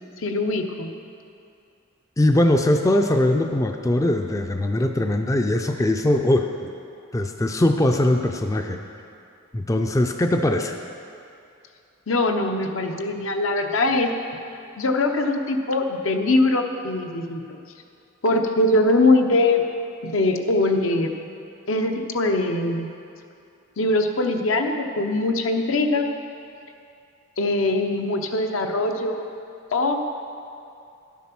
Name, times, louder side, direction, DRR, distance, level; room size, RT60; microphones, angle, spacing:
voice 1, 0.2-0.9 12.1-14.1 14.8-17.4 18.2-19.6 20.0-21.1 21.7-22.9 23.8-26.1 27.4-29.2 29.7-30.2, left 2 dB, 75° left, 4 dB, 0.8 m, -22 dB
voice 2, 2.2-6.7 7.1-8.8 9.5-10.8, left 1 dB, 15° left, 4 dB, 0.4 m, -21 dB
11.5 x 7.3 x 5.9 m, 2.6 s
head